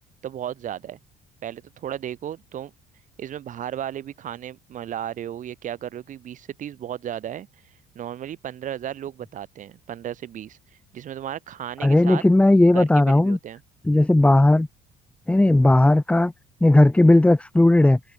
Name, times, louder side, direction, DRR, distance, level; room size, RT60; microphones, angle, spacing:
voice 1, 0.2-1.0 1.4-2.7 3.2-7.5 7.9-10.6 10.9-12.2 12.7-13.6, right 10 dB, 50° right, 2.2 m, -34 dB
voice 2, 11.8-13.4 13.9-14.7 15.3-16.3 16.6-18.0, left 1 dB, 5° left, 0.9 m, -16 dB
cardioid pair, 115°, 17 cm